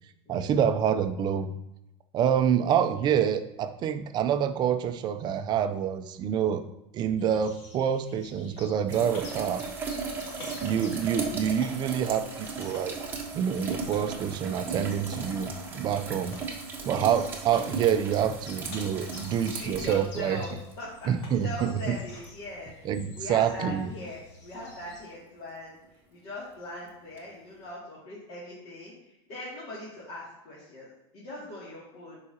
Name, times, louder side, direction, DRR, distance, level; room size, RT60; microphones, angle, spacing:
voice 1, 0.3-1.5 2.1-6.6 6.9-9.6 10.6-12.9 13.3-16.4 16.9-20.4 21.1-22.0 22.8-23.9, right 8 dB, 30° right, 9 dB, 0.5 m, -27 dB
sound 1, 7.2-25.0, left 2 dB, 85° left, 1.7 m, -51 dB
sound 2, 8.5-24.2, left 2 dB, 65° left, 2.5 m, -52 dB
sound 3, 8.9-20.7 22.2-22.3 27.2-27.3, right 4 dB, 15° right, 1.2 m, -37 dB
voice 2, 10.1-10.5 16.8-17.3 19.5-21.1 21.4-22.7 23.1-25.8 26.1-28.9 29.3-32.2, left 1 dB, 40° left, -8 dB, 2.4 m, -41 dB
11.0 x 4.8 x 2.8 m, 0.89 s
supercardioid pair, 150°, 15 cm